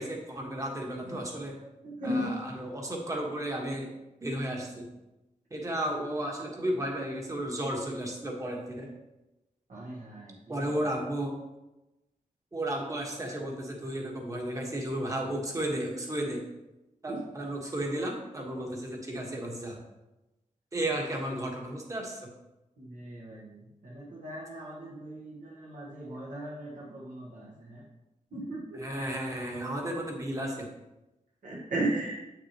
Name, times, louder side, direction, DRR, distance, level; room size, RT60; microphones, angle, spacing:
voice 1, 0.0-1.6 2.0-3.9 4.2-4.9 5.5-8.9 10.5-11.3 12.5-16.4 17.0-19.8 20.7-22.2 28.7-30.7, right 1 dB, 25° right, 0 dB, 1.3 m, -33 dB
voice 2, 1.8-2.3 9.7-10.3 17.1-17.2 22.8-27.8 28.3-28.8 31.4-32.2, right 1 dB, 75° right, -6 dB, 1.4 m, -36 dB
8.4 x 6.0 x 2.9 m, 0.99 s
wide cardioid pair, 160°, 14 cm